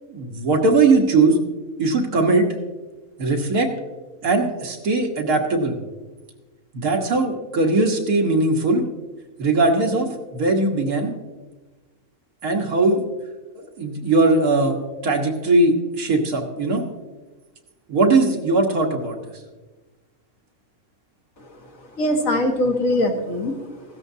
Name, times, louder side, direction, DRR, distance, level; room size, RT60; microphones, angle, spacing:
voice 1, 0.1-1.4 1.8-2.5 3.2-3.7 4.2-5.8 6.7-8.9 9.4-11.2 12.4-13.0 13.8-14.8 15.0-16.9 17.9-19.2, right 3 dB, 85° right, 1 dB, 1.9 m, -19 dB
voice 2, 21.9-24.0, left 1 dB, 65° left, 2 dB, 1.9 m, -23 dB
16.0 x 13.0 x 2.8 m, 1.2 s
omnidirectional pair, 1.5 m